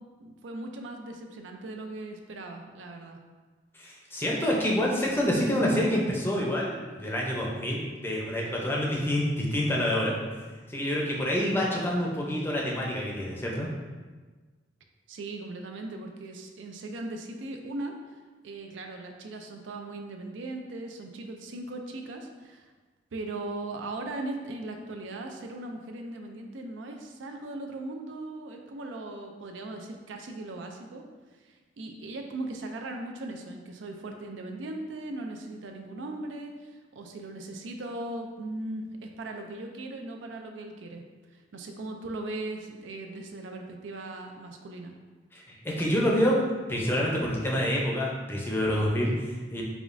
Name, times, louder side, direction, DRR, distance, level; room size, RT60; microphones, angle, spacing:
voice 1, 0.2-3.2 15.1-18.0 18.4-22.7 23.1-31.0 31.4-41.0 41.3-44.9, right 2 dB, 80° right, 3 dB, 0.4 m, -38 dB
voice 2, 3.7-10.1 10.7-13.7 45.3-46.4 46.7-49.6, equal, 10° left, -3 dB, 0.5 m, -27 dB
5.0 x 2.4 x 2.5 m, 1.4 s
head